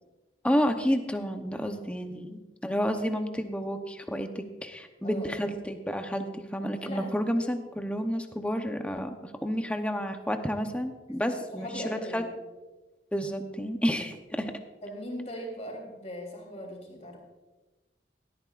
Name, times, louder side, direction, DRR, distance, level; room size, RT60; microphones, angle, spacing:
voice 1, 0.4-12.2 13.1-14.6, equal, 5° left, 5 dB, 0.8 m, -30 dB
voice 2, 5.0-5.5 6.8-7.1 11.5-12.3 14.8-17.2, equal, 40° left, 0 dB, 3.4 m, -39 dB
17.5 x 13.0 x 2.5 m, 1.2 s
head